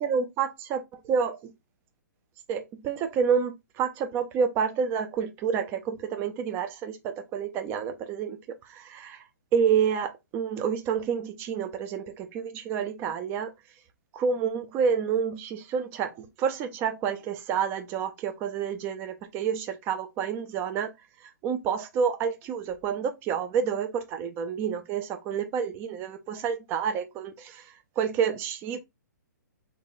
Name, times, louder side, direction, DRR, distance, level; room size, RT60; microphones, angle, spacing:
voice 1, 0.0-1.4 2.5-9.2 9.5-13.5 14.1-20.9 21.2-28.8, right 7 dB, 20° right, 0.4 m, -29 dB
3.8 x 2.3 x 2.6 m
figure-of-eight pair, 125°, 10 cm